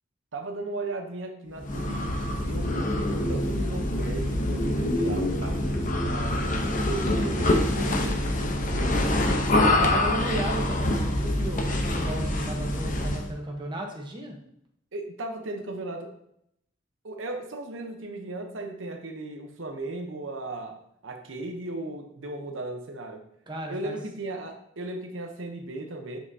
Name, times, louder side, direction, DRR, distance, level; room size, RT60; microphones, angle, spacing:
voice 1, 0.3-8.9 14.9-16.1 17.0-23.3 23.7-26.2, right 2 dB, 80° right, 4 dB, 0.8 m, -37 dB
sound 1, 1.6-13.3, left 1 dB, 45° left, 0.8 m, -25 dB
voice 2, 9.6-14.4 23.5-24.0, right 1 dB, 25° right, 0 dB, 1.0 m, -35 dB
7.3 x 5.7 x 2.7 m, 0.75 s
head